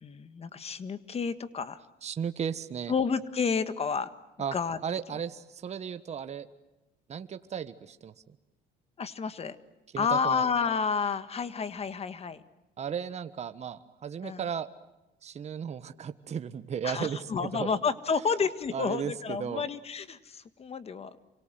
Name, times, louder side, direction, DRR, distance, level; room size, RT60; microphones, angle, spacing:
voice 1, 0.0-1.8 2.9-4.1 4.5-4.8 9.0-9.6 10.0-12.4 14.2-14.4 16.8-21.2, left 5 dB, 35° left, 12 dB, 1.7 m, -30 dB
voice 2, 2.0-2.9 4.4-4.5 4.8-6.5 7.1-8.1 9.9-10.4 12.8-14.7 15.2-17.7 18.7-19.6, right 7 dB, 40° right, 10 dB, 1.4 m, -35 dB
28.0 x 25.0 x 7.7 m, 1.0 s
cardioid pair, 110°, 17 cm